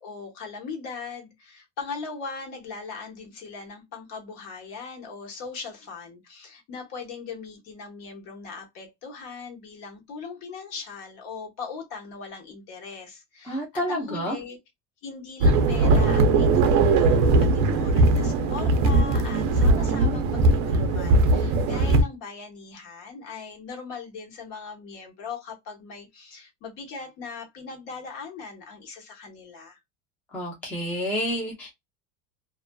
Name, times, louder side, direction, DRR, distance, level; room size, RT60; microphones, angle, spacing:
voice 1, 0.0-14.6 15.0-29.8, left 4 dB, 55° left, 1.2 m, -39 dB
voice 2, 13.5-14.4 30.3-31.7, equal, 5° left, 0.5 m, -29 dB
sound 1, 15.4-22.0, right 2 dB, 45° right, 0.5 m, -20 dB
2.5 x 2.4 x 2.2 m
cardioid pair, 155°, 40 cm